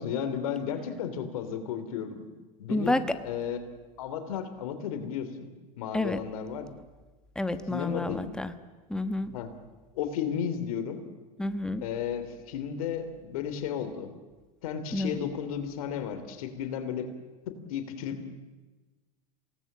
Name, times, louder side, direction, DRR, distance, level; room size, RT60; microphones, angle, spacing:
voice 1, 0.0-3.7 4.0-5.5 5.8-6.7 7.7-8.3 9.3-9.5 9.9-11.0 11.8-14.1 14.6-17.1 17.5-18.2, left 8 dB, 75° left, 9 dB, 3.0 m, -34 dB
voice 2, 2.7-3.2 5.9-6.2 7.3-8.5 8.9-9.3 11.4-11.9 14.9-15.2, left 2 dB, 5° left, 10 dB, 1.3 m, -29 dB
27.5 x 18.5 x 7.4 m, 1.2 s
hypercardioid pair, 105°, 18 cm